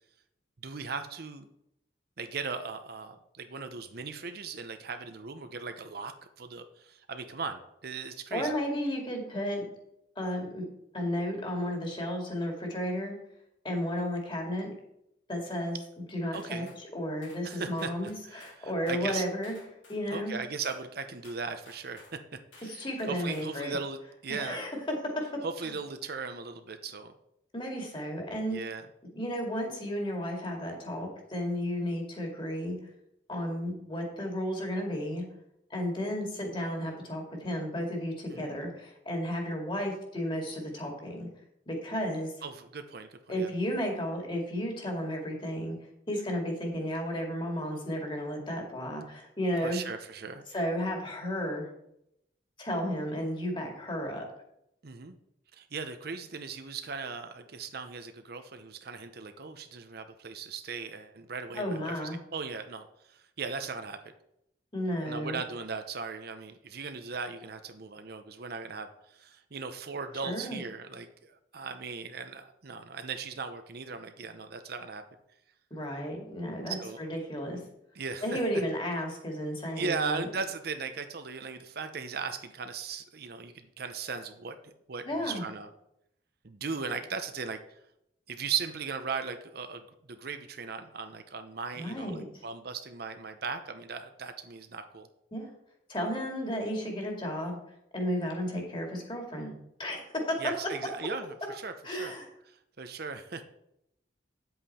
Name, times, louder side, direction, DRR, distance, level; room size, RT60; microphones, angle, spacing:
voice 1, 0.6-1.5 2.2-8.5 16.3-16.7 17.4-19.2 20.1-22.2 22.5-24.6 25.4-27.1 28.5-28.9 38.3-38.6 42.4-43.5 49.6-50.4 54.8-55.2 55.5-64.0 65.1-75.0 76.7-77.0 77.9-78.4 79.8-85.7 86.4-87.6 88.3-95.1 100.4-102.1 102.5-103.4, right 5 dB, 55° right, 8 dB, 0.7 m, -38 dB
voice 2, 8.3-9.6 10.2-10.6 10.9-13.2 13.6-14.7 15.3-16.7 16.9-19.5 19.9-20.4 22.6-23.8 24.3-25.3 27.5-28.6 29.1-32.8 33.3-35.2 35.7-41.3 41.7-42.3 43.3-45.8 46.1-49.8 50.5-51.7 52.6-54.3 61.5-62.2 64.7-65.4 70.2-70.6 75.7-77.6 78.2-80.3 85.0-85.4 91.8-92.2 95.3-95.5 95.9-97.6 97.9-99.5 99.8-100.4 101.8-102.3, equal, 25° left, 1 dB, 2.2 m, -33 dB
sound 1, 16.3-16.8 17.2-17.4 17.8-18.6 18.9-20.0 20.6-20.8 21.2-22.2 22.5-22.7 23.0-23.5, left 3 dB, 80° left, 3.6 m, -55 dB
9.3 x 7.9 x 4.2 m, 0.78 s
head